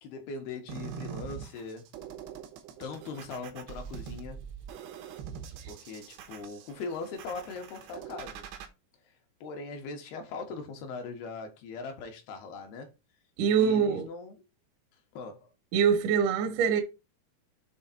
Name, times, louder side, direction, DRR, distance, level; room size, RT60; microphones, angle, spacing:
voice 1, 0.0-1.9 2.8-4.4 5.7-8.4 9.4-12.9 13.5-14.3 15.1-15.5, left 4 dB, 75° left, 3.1 m, -40 dB
sound 1, 0.7-8.7, right 8 dB, 90° right, 3.1 m, -43 dB
voice 2, 13.4-14.1 15.7-16.8, right 7 dB, 75° right, 1.9 m, -24 dB
7.8 x 3.4 x 4.1 m
omnidirectional pair, 4.6 m